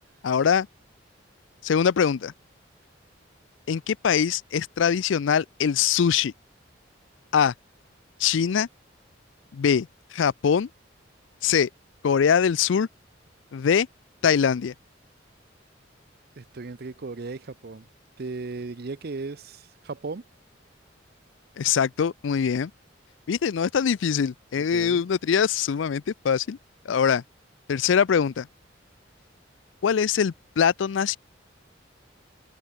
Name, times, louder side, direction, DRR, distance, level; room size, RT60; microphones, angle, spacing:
voice 1, 0.2-0.7 1.6-2.3 3.7-6.3 7.3-7.5 8.2-8.7 9.5-10.7 11.4-11.7 12.0-12.9 13.5-13.9 14.2-14.7 21.6-22.7 23.3-26.6 26.9-27.2 27.7-28.5 29.8-31.2, left 7 dB, 80° left, 0.4 m, -23 dB
voice 2, 16.4-17.8 18.2-20.2 24.6-25.0, right 3 dB, 55° right, 0.6 m, -36 dB
open air
head